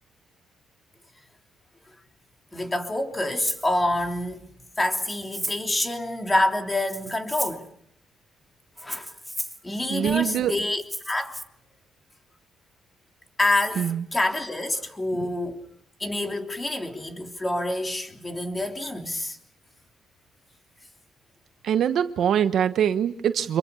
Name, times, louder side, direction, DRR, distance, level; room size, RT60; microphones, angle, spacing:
voice 1, 2.5-4.5 4.8-7.7 8.8-9.1 9.6-11.4 13.4-15.6 16.0-19.4, left 1 dB, 20° left, 3.3 m, -27 dB
Rattle (instrument), 3.4-3.7 4.8-5.7 6.8-7.7 8.8-9.6 10.8-11.4, equal, ahead, 1.7 m, -34 dB
voice 2, 9.9-10.5 13.8-14.0 15.1-15.3 21.6-23.6, right 9 dB, 70° right, 1.1 m, -23 dB
26.0 x 23.0 x 7.0 m
cardioid pair, 90°, 0 cm